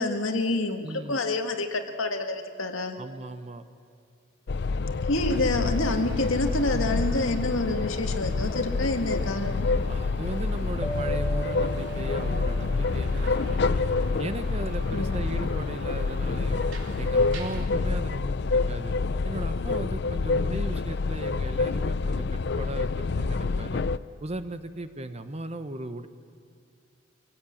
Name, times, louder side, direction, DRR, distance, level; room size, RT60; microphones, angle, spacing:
voice 1, 0.0-3.0 5.1-9.7 14.9-15.2, left 2 dB, 80° left, 5 dB, 1.8 m, -28 dB
voice 2, 0.8-1.2 3.0-3.6 9.9-13.8 14.2-16.7 17.0-18.9 19.2-23.8 24.2-26.1, right 1 dB, 30° right, 10 dB, 0.9 m, -37 dB
sound 1, 4.5-24.0, left 4 dB, 55° left, 0.5 m, -27 dB
sound 2, 5.1-17.7, right 1 dB, 70° right, 3.0 m, -42 dB
sound 3, 10.8-13.8, right 2 dB, 5° right, 1.0 m, -38 dB
25.0 x 17.0 x 8.6 m, 2.5 s
head